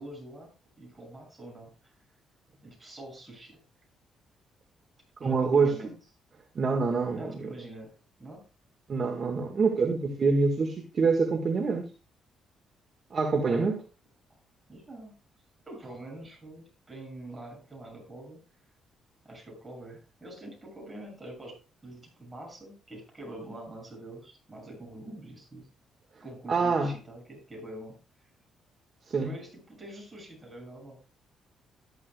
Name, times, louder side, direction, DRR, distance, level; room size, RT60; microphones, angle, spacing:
voice 1, 0.0-1.9 2.6-3.6 5.2-6.0 7.2-8.4 13.4-13.8 14.7-15.1 15.7-18.4 19.2-25.7 26.2-28.3 29.2-31.0, right 1 dB, 20° right, 0 dB, 6.6 m, -45 dB
voice 2, 5.2-5.7 6.5-7.3 8.9-11.9 13.1-13.8 26.5-26.9 29.1-29.3, right 4 dB, 45° right, 3 dB, 1.7 m, -25 dB
13.5 x 11.0 x 2.3 m, 0.33 s
cardioid pair, 90°, 0 cm